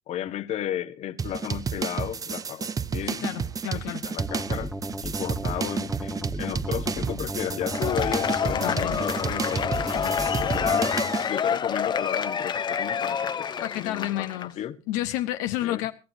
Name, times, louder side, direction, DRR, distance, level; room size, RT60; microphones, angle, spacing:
voice 1, 0.1-3.2 3.7-4.7 5.0-10.9 11.3-14.8 15.6-15.9, left 11 dB, 55° left, 1.1 m, -34 dB
sound 1, 1.2-11.3, right 6 dB, 25° right, 0.7 m, -31 dB
voice 2, 3.0-4.1 8.5-9.0 13.6-14.6 14.9-15.9, left 14 dB, 85° left, 0.8 m, -30 dB
sound 2, 4.2-11.0, equal, 5° right, 1.1 m, -35 dB
Cheering / Applause / Crowd, 7.6-14.4, left 7 dB, 35° left, 0.8 m, -28 dB
23.0 x 14.5 x 2.6 m
supercardioid pair, 100°, 13 cm